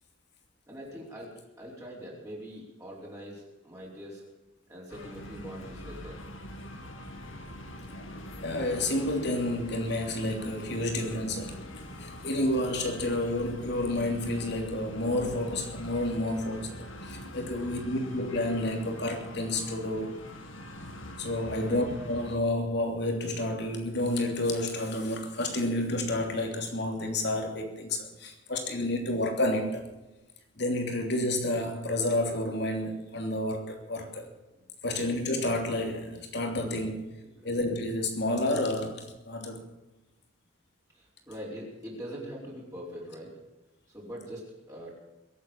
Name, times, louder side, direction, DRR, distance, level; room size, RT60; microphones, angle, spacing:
voice 1, 0.7-4.2 4.7-6.2 8.0-8.2 17.5-17.6 21.5-21.8 40.9-43.3 43.9-44.9, equal, 15° right, 4.6 m, -43 dB
sound 1, 4.9-22.4, left 1 dB, 75° left, 2.2 m, -43 dB
voice 2, 8.4-11.6 12.0-20.2 21.2-29.8 30.6-34.3 34.8-37.1 37.4-39.6, left 1 dB, 55° left, 3.0 m, -30 dB
23.0 x 8.5 x 7.2 m
head